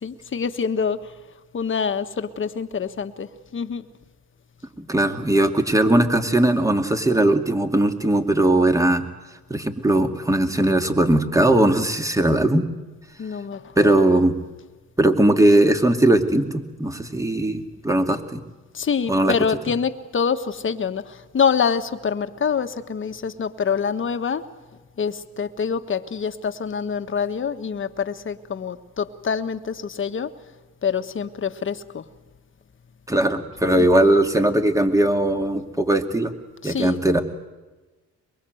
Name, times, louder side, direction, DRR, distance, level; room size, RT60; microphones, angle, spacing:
voice 1, 0.0-1.1 1.5-3.9 13.2-14.0 18.7-24.5 25.0-30.3 30.8-32.0 33.8-33.9 36.6-37.0, left 6 dB, 40° left, 9 dB, 1.5 m, -26 dB
voice 2, 4.8-9.0 9.5-12.7 13.8-14.3 15.0-18.4 19.1-19.3 33.1-36.3 36.6-37.2, right 1 dB, 10° right, 6 dB, 2.3 m, -19 dB
23.5 x 22.0 x 8.0 m, 1.2 s
cardioid pair, 90°, 30 cm